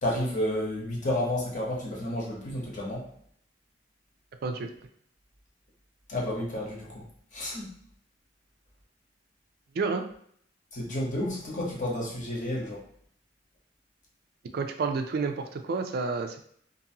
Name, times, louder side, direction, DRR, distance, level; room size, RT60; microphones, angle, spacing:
voice 1, 0.0-3.1 6.1-7.0 7.3-7.7 10.7-12.8, left 1 dB, 45° left, -3 dB, 0.9 m, -31 dB
voice 2, 9.7-10.1 14.5-16.4, right 4 dB, 55° right, 6 dB, 0.4 m, -30 dB
2.6 x 2.6 x 2.8 m, 0.65 s
head